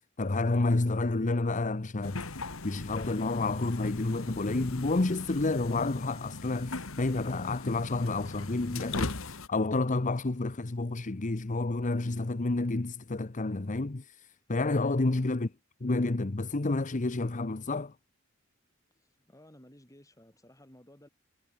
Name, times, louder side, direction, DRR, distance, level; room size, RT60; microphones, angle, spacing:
voice 1, 0.0-15.5 15.8-17.9, left 2 dB, 35° left, 0.8 m, -30 dB
sound 1, 2.0-9.5, left 3 dB, 70° left, 1.8 m, -39 dB
voice 2, 18.9-21.1, left 1 dB, 15° left, 7.0 m, -56 dB
head